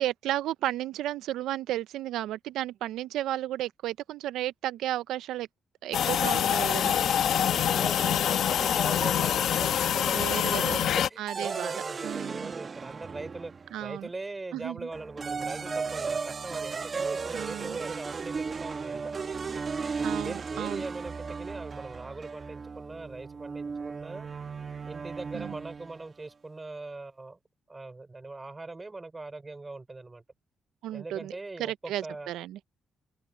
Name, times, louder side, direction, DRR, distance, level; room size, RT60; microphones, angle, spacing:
voice 1, 0.0-5.5 5.8-7.0 10.1-10.8 11.2-11.7 12.0-12.5 13.7-14.1 14.5-14.8 17.3-17.8 20.0-20.8 25.3-25.5 30.8-31.3 31.6-32.6, right 13 dB, 85° right, 0.4 m, -33 dB
sound 1, 5.9-11.1, left 9 dB, 70° left, 0.9 m, -25 dB
voice 2, 6.9-13.5 13.8-19.1 20.0-24.3 24.9-27.4 27.7-30.2 30.9-32.3, right 3 dB, 20° right, 3.2 m, -40 dB
sound 2, 11.3-13.8 14.9-26.0, right 5 dB, 40° right, 1.0 m, -35 dB
Piano, 15.7-18.3 18.6-18.9 19.7-19.8, left 3 dB, 25° left, 2.6 m, -55 dB
open air
cardioid pair, 90°, 0 cm